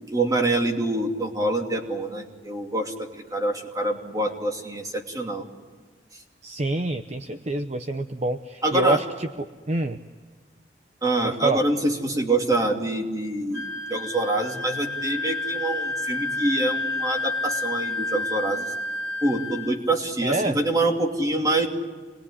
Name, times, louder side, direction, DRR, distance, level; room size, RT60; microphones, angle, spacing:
voice 1, 0.1-5.4 8.6-9.0 11.0-18.7 19.2-21.7, right 2 dB, 20° right, 3 dB, 2.7 m, -25 dB
voice 2, 6.4-10.0 11.2-11.6 20.2-20.6, right 2 dB, 40° right, 8 dB, 0.8 m, -27 dB
Wind instrument woodwind instrument, 13.5-19.8, left 2 dB, 80° right, 4.5 m, -30 dB
27.0 x 21.0 x 9.9 m, 1.5 s
head